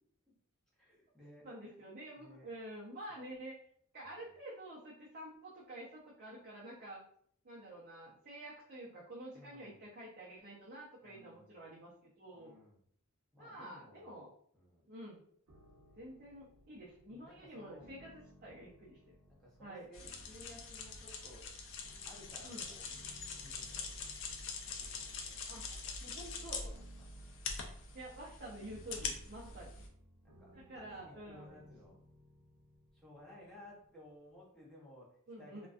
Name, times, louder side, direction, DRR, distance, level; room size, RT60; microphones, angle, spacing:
voice 1, 0.7-1.8 2.2-2.5 4.0-4.2 9.3-9.8 11.0-11.6 12.3-12.8 13.3-14.2 14.5-14.9 15.8-16.2 17.1-17.9 19.4-21.4 22.0-22.9 23.3-26.2 26.7-27.5 29.3-29.6 30.2-32.0 32.9-35.7, left 1 dB, ahead, -6 dB, 0.7 m, -58 dB
voice 2, 1.4-3.6 3.9-7.0 7.4-12.5 13.4-14.3 14.9-15.2 16.0-19.0 19.6-19.9 22.4-22.7 25.5-25.7 26.0-26.7 27.9-29.9 30.5-31.6 35.3-35.7, right 1 dB, 40° right, -6 dB, 0.5 m, -49 dB
sound 1, 15.5-34.4, equal, 80° right, 0.7 m, -63 dB
sound 2, 19.9-29.9, left 4 dB, 60° left, 0.4 m, -44 dB
2.4 x 2.2 x 2.3 m, 0.64 s
head